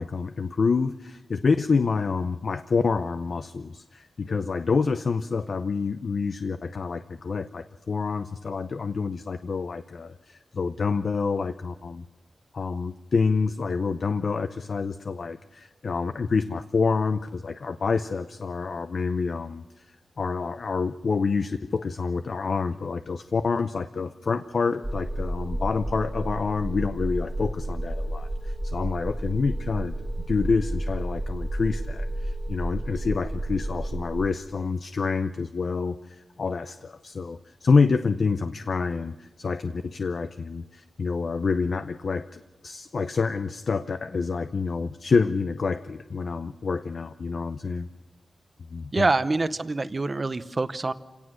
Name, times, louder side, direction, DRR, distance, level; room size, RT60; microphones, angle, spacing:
voice 1, 0.0-12.0 12.5-19.6 20.2-30.0 30.3-47.9 48.7-49.0, left 4 dB, 60° left, 10 dB, 0.6 m, -27 dB
sound 1, 24.8-34.3, right 1 dB, 15° right, 1.3 m, -31 dB
voice 2, 48.9-50.9, right 3 dB, 35° right, 13 dB, 0.8 m, -25 dB
28.5 x 17.5 x 6.3 m, 1.2 s
wide cardioid pair, 135°, 0 cm